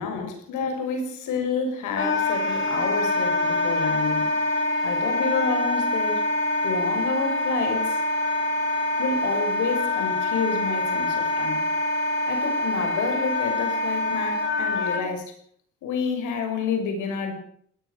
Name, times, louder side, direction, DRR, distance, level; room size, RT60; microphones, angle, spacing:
voice 1, 0.0-4.3 4.8-6.2 6.6-8.0 9.0-11.6 12.3-15.3 15.8-17.3, left 5 dB, 90° left, 6 dB, 6.6 m, -29 dB
Wind instrument woodwind instrument, 2.0-15.0, left 1 dB, 40° left, 7.2 m, -25 dB
20.0 x 19.5 x 6.8 m, 0.62 s
cardioid pair, 90°, 30 cm